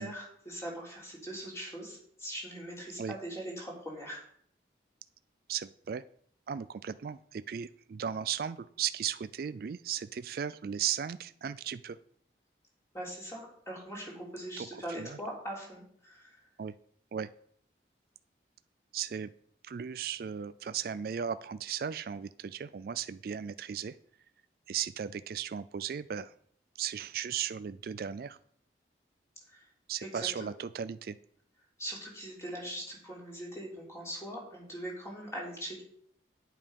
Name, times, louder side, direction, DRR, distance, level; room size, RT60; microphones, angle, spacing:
voice 1, 0.0-4.2 12.9-16.5 29.5-29.7 30.0-30.5 31.8-35.8, right 1 dB, 15° left, -3 dB, 3.5 m, -41 dB
voice 2, 5.5-6.0 6.5-12.0 14.6-14.7 15.0-15.2 16.6-16.7 17.1-17.3 18.9-19.3 19.6-24.0 24.7-26.3 26.8-28.4 29.9-31.2, right 8 dB, 55° right, 14 dB, 0.3 m, -36 dB
9.3 x 8.4 x 5.3 m, 0.64 s
head